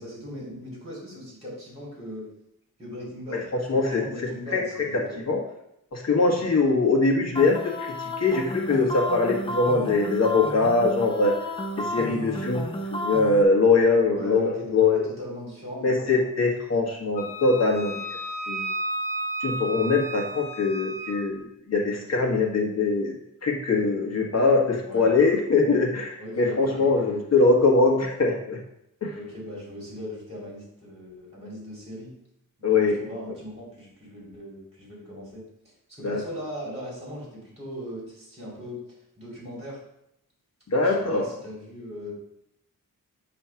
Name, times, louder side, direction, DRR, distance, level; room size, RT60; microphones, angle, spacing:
voice 1, 0.0-2.3 2.8-5.3 6.3-6.5 12.2-12.6 14.1-16.3 21.9-22.3 24.8-25.1 26.2-27.2 29.1-32.1 32.6-35.4 36.0-38.8 39.2-39.8 40.8-42.1, equal, 20° right, -4 dB, 3.1 m, -39 dB
voice 2, 3.7-4.0 4.5-4.6 4.9-5.4 5.9-11.3 11.8-15.1 15.8-17.9 18.5-18.7 19.4-23.1 23.4-28.6 29.0-29.1 32.6-33.0 36.0-36.2 40.7-41.3, left 3 dB, 45° left, -1 dB, 1.6 m, -22 dB
sound 1, 7.3-13.4, left 1 dB, 15° left, 0.6 m, -32 dB
Wind instrument woodwind instrument, 17.2-21.2, right 1 dB, 75° left, 1.8 m, -33 dB
8.0 x 3.3 x 5.8 m, 0.80 s
wide cardioid pair, 165°, 34 cm